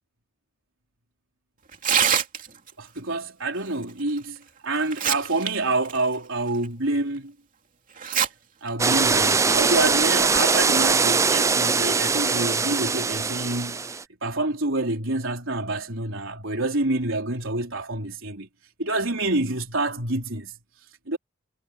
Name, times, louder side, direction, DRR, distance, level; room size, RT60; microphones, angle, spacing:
Tearing, 1.7-2.7 4.2-4.3 4.8-5.5 5.8-6.0 6.6-6.7 8.0-8.3 8.7-8.8 9.6-9.9, right 8 dB, 40° right, 2.9 m, -23 dB
voice 1, 2.8-7.3 8.6-18.5 18.8-20.5 21.1-21.2, right 2 dB, 70° right, 4.1 m, -27 dB
sound 1, 8.8-14.0, right 4 dB, 15° right, 0.4 m, -22 dB
head